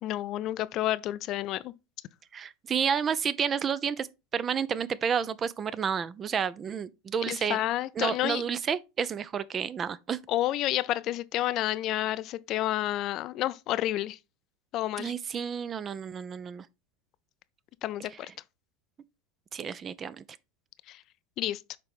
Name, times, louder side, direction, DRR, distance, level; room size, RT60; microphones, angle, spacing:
voice 1, 0.0-1.7 7.3-8.4 10.3-14.2 14.7-15.1 17.8-18.3 20.9-21.0 21.4-21.6, left 14 dB, 45° left, 0.4 m, -30 dB
voice 2, 2.3-4.1 4.3-7.6 8.0-10.2 15.0-16.7 19.5-20.2, right 7 dB, 30° right, 0.5 m, -30 dB
6.6 x 4.7 x 3.5 m
figure-of-eight pair, 80°, 0 cm